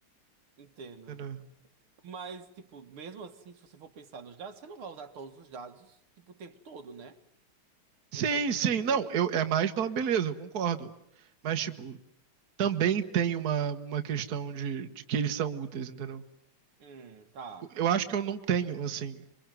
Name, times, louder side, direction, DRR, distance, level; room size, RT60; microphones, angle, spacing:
voice 1, 0.6-1.2 2.0-7.2 8.1-9.2 16.8-17.7, right 5 dB, 80° right, 2.5 m, -46 dB
voice 2, 8.1-10.9 11.4-12.0 12.6-16.2 17.8-19.2, right 8 dB, 50° right, 1.7 m, -29 dB
27.5 x 24.0 x 9.2 m
omnidirectional pair, 2.3 m